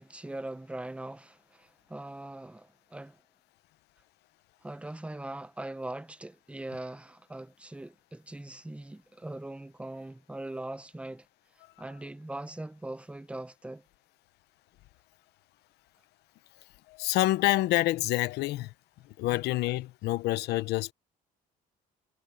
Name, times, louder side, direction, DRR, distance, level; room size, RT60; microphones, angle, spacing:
voice 1, 0.0-3.2 4.6-11.3 11.8-13.8, right 1 dB, 5° right, 1.1 m, -41 dB
voice 2, 16.9-18.7 19.1-20.9, left 17 dB, 85° left, 0.9 m, -27 dB
cardioid pair, 110°, 17 cm